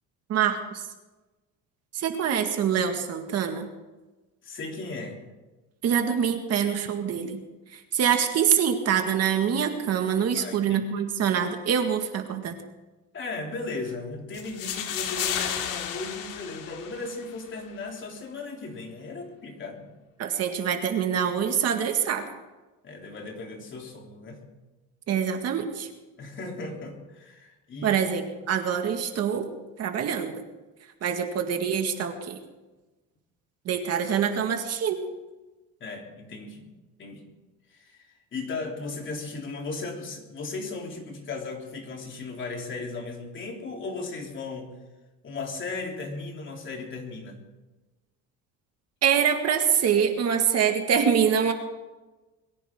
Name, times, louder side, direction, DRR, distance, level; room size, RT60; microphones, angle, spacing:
voice 1, 0.3-0.8 1.9-3.7 5.8-7.4 7.7-12.6 20.2-22.3 25.1-25.9 27.8-29.5 29.8-30.4 31.0-32.4 33.7-35.0 49.0-51.5, right 8 dB, 50° right, 5 dB, 1.9 m, -25 dB
voice 2, 4.4-5.2 10.3-10.8 13.1-19.9 22.8-24.5 26.2-28.0 35.8-36.7 37.0-37.3 37.7-38.1 38.3-44.7 45.2-47.4, left 3 dB, 35° left, 1 dB, 3.5 m, -36 dB
sound 1, 14.3-17.4, left 9 dB, 75° left, 2.3 m, -32 dB
22.5 x 15.5 x 3.8 m, 1.2 s
cardioid pair, 135°, 33 cm